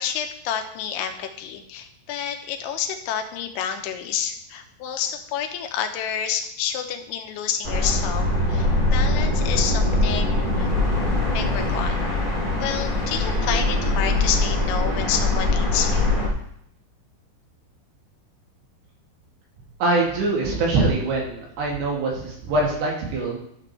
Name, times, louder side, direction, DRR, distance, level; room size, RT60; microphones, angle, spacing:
voice 1, 0.0-10.7 11.3-12.1 12.5-16.2, left 8 dB, 85° left, 5 dB, 3.2 m, -29 dB
sound 1, 7.6-16.3, left 2 dB, 15° right, 1.6 m, -22 dB
voice 2, 19.8-23.4, right 2 dB, 70° right, -2 dB, 4.3 m, -23 dB
12.5 x 7.6 x 3.2 m, 0.71 s
omnidirectional pair, 5.3 m